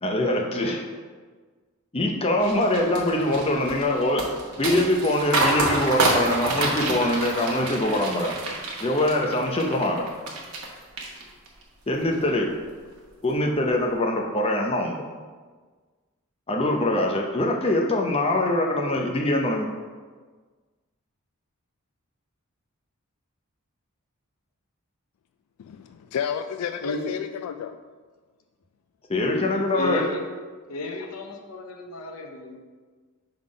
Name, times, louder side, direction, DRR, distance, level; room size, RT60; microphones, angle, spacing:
voice 1, 0.0-0.8 1.9-4.3 4.6-8.3 8.8-10.1 11.9-12.6 13.2-15.0 16.5-19.7 29.1-30.0, left 1 dB, 25° left, 1 dB, 0.6 m, -23 dB
sound 1, 2.4-10.7 11.0-11.6 12.0-12.3, right 2 dB, 80° right, 1.2 m, -27 dB
voice 2, 25.6-27.8, left 8 dB, 90° left, 9 dB, 0.3 m, -31 dB
voice 3, 26.8-27.1 29.1-30.2 30.7-32.6, left 2 dB, 70° left, 4 dB, 0.7 m, -33 dB
5.6 x 3.8 x 4.9 m, 1.5 s
head